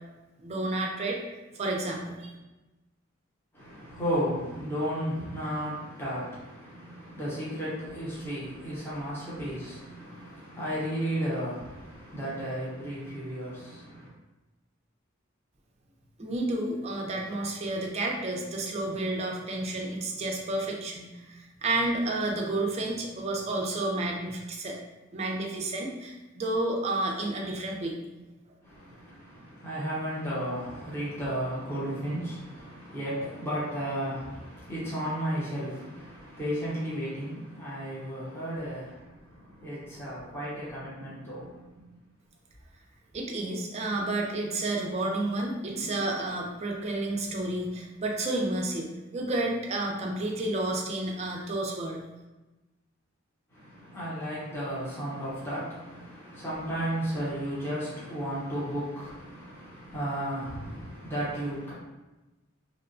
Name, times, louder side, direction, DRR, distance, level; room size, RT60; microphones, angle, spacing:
voice 1, 0.4-1.2 1.5-2.3 16.2-24.8 25.1-28.0 43.1-52.0, right 2 dB, 30° right, 0 dB, 0.4 m, -31 dB
voice 2, 3.5-14.1 28.6-41.9 53.5-61.7, equal, 10° left, -9 dB, 0.7 m, -34 dB
2.8 x 2.1 x 2.5 m, 1.1 s
head